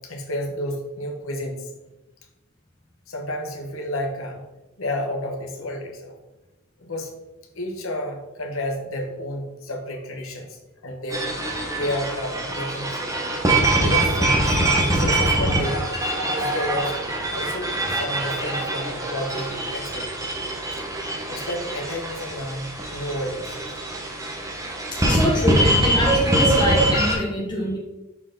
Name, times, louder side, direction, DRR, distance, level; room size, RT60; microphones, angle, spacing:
voice 1, 0.0-1.7 3.1-4.4 4.8-6.2 6.8-7.1 7.5-11.4 11.7-13.2 13.7-17.0 17.3-20.1 20.7-20.8 21.3-23.6 25.5-25.6, left 1 dB, 70° left, 2 dB, 1.2 m, -31 dB
sound 1, 11.1-27.1, right 1 dB, 15° right, 1.1 m, -23 dB
voice 2, 11.3-11.9 24.9-27.8, left 1 dB, 20° left, -3 dB, 0.8 m, -26 dB
6.0 x 4.5 x 3.9 m, 1.0 s
head